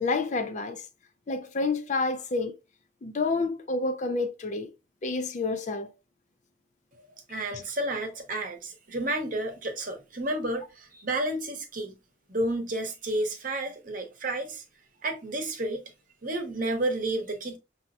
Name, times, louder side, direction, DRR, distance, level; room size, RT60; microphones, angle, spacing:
voice 1, 0.0-0.9 1.3-2.6 3.0-4.7 5.0-5.9, left 3 dB, 40° left, 0.5 m, -29 dB
voice 2, 7.3-11.9 12.3-14.6 15.0-15.8 16.2-17.6, right 1 dB, 45° right, 0.9 m, -31 dB
6.2 x 2.8 x 2.4 m
head